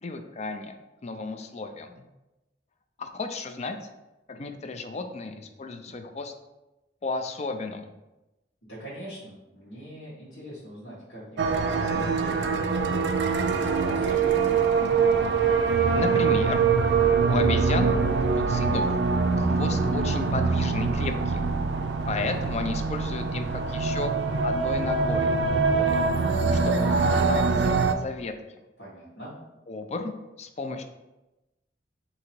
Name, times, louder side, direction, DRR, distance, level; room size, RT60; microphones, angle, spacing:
voice 1, 0.0-0.7 1.0-2.1 3.0-3.8 4.3-6.3 7.0-7.9 15.9-16.6 17.3-17.9 18.2-18.9 19.4-21.4 22.1-24.1 24.4-26.0 26.5-28.3 29.7-30.1 30.4-30.8, left 3 dB, 40° left, 6 dB, 0.4 m, -33 dB
voice 2, 8.7-13.1 13.4-14.5 28.8-29.3, equal, 80° left, -11 dB, 1.4 m, -42 dB
sound 1, 11.4-27.9, right 4 dB, 70° right, 0.4 m, -24 dB
3.9 x 2.8 x 4.4 m, 1.0 s
head